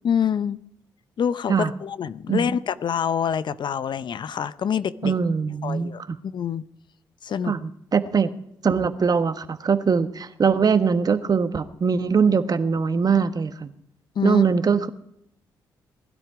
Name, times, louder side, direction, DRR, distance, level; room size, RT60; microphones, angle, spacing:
voice 1, 0.0-0.6 1.2-5.1 5.6-6.0 6.3-6.6 7.2-7.5 14.2-14.4, left 8 dB, 55° left, 0.7 m, -26 dB
voice 2, 5.0-6.2 7.4-8.3 8.6-13.7 14.2-14.9, right 6 dB, 45° right, 1.3 m, -22 dB
20.0 x 12.5 x 4.9 m
hypercardioid pair, 45°, 9 cm